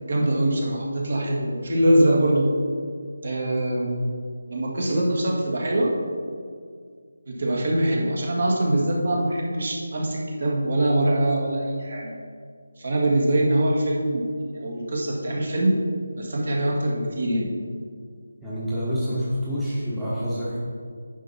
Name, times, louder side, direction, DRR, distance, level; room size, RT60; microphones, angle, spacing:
voice 1, 0.0-2.5 3.2-4.1 4.5-5.9 7.3-12.2 12.8-15.8 16.2-17.5, right 1 dB, 55° right, -2 dB, 1.9 m, -23 dB
voice 2, 18.4-20.6, equal, 5° right, -12 dB, 1.2 m, -27 dB
9.7 x 5.8 x 4.2 m, 2.1 s
figure-of-eight pair, 170°, 0 cm